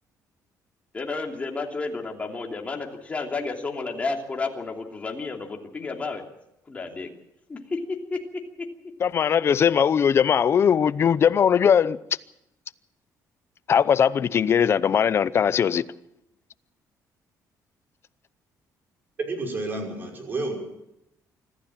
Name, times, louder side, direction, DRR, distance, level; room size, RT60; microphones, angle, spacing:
voice 1, 0.9-6.3 6.6-7.1 7.5-8.7, left 3 dB, 20° left, 2.9 m, -31 dB
voice 2, 9.0-12.0 13.7-15.8, left 7 dB, 40° left, 0.7 m, -20 dB
voice 3, 19.2-20.6, right 2 dB, 30° right, 5.8 m, -30 dB
25.5 x 14.5 x 7.5 m
cardioid pair, 150°, 7 cm